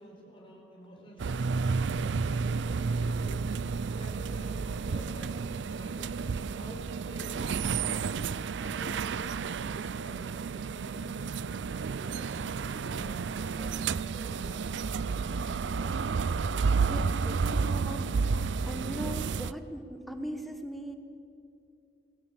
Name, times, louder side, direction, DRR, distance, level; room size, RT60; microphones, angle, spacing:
voice 1, 0.0-8.1 8.6-11.6 12.0-16.2, equal, 30° left, -2 dB, 4.9 m, -50 dB
sound 1, 1.2-19.5, right 5 dB, 85° right, 0.4 m, -31 dB
voice 2, 16.8-20.9, right 1 dB, ahead, 6 dB, 1.2 m, -40 dB
19.5 x 18.0 x 7.5 m, 2.6 s
head